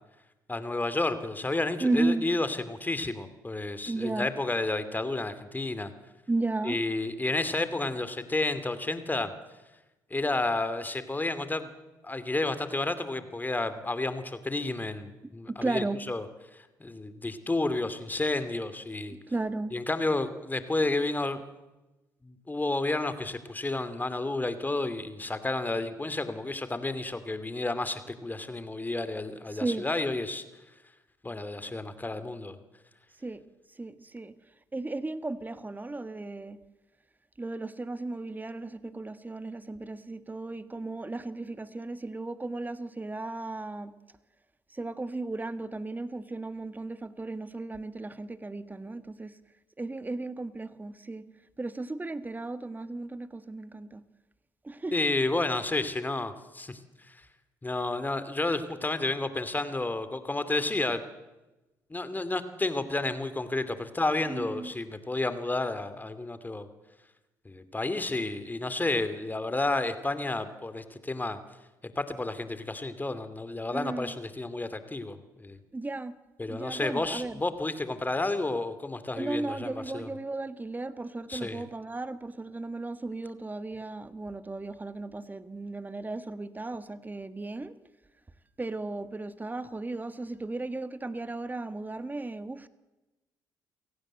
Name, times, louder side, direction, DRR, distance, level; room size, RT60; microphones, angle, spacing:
voice 1, 0.5-5.9 6.6-9.3 10.1-11.7 12.0-16.3 16.8-19.2 19.7-21.4 22.2-30.4 31.2-32.6 54.9-56.8 57.1-57.2 57.6-61.0 61.9-66.7 67.4-71.4 72.0-75.6 76.4-80.1 81.3-81.6, left 2 dB, 20° left, 12 dB, 2.7 m, -31 dB
voice 2, 1.8-2.2 3.9-4.3 6.3-6.8 15.5-16.0 19.3-19.7 29.5-29.9 33.2-33.4 33.8-34.3 34.7-36.6 37.4-43.9 44.7-49.3 49.8-51.2 51.6-54.0 54.6-54.9 64.3-64.7 73.7-74.1 75.7-76.1 76.5-77.4 79.2-87.7 88.6-92.7, right 2 dB, 20° right, 13 dB, 1.7 m, -35 dB
29.0 x 17.5 x 7.8 m, 1.1 s
hypercardioid pair, 50°, 9 cm